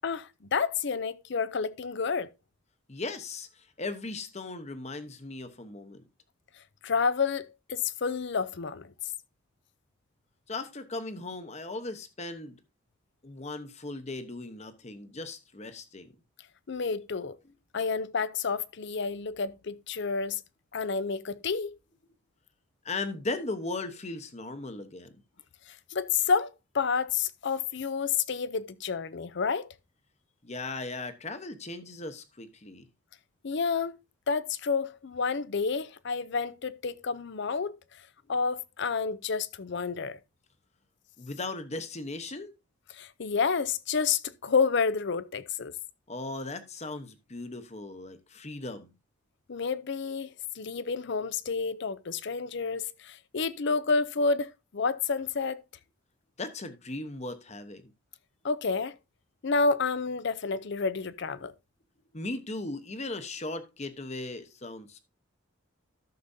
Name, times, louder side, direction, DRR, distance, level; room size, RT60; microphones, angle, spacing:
voice 1, 0.0-2.3 6.8-8.9 16.7-17.4 17.7-20.4 20.7-21.8 25.7-29.7 33.4-34.0 34.3-37.8 38.3-40.2 42.9-45.7 49.5-55.6 58.4-58.9 59.4-61.5, left 5 dB, 55° left, 0.5 m, -29 dB
voice 2, 2.9-6.0 10.5-12.6 13.2-16.1 22.8-25.1 30.4-32.8 41.2-42.5 46.1-48.9 56.4-57.9 62.1-65.0, left 2 dB, 30° left, 1.0 m, -37 dB
13.5 x 6.7 x 2.7 m
head